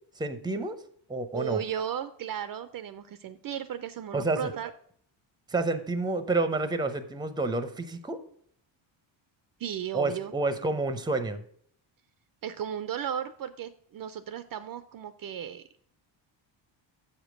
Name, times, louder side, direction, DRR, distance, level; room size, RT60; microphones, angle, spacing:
voice 1, 0.2-0.8 1.1-1.6 4.1-4.5 5.5-8.2 9.9-11.4, right 3 dB, 10° right, 11 dB, 0.7 m, -29 dB
voice 2, 1.3-4.7 9.6-10.3 12.4-15.6, right 9 dB, 50° right, 12 dB, 0.5 m, -35 dB
7.1 x 5.1 x 6.2 m, 0.63 s
cardioid pair, 120°, 46 cm